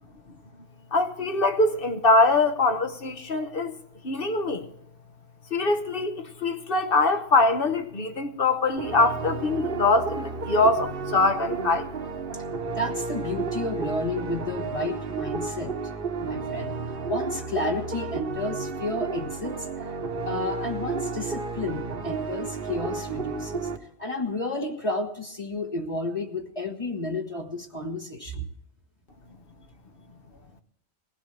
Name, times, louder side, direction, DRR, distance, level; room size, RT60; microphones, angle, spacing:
voice 1, 0.9-3.7 4.0-4.7 5.5-11.9, left 2 dB, 55° left, 1.4 m, -23 dB
sound 1, 8.8-23.8, right 4 dB, 55° right, 1.3 m, -32 dB
voice 2, 12.7-15.8 16.2-16.8 17.1-19.7 20.2-28.5, left 2 dB, 30° left, 1.3 m, -31 dB
19.5 x 16.0 x 3.3 m
omnidirectional pair, 1.1 m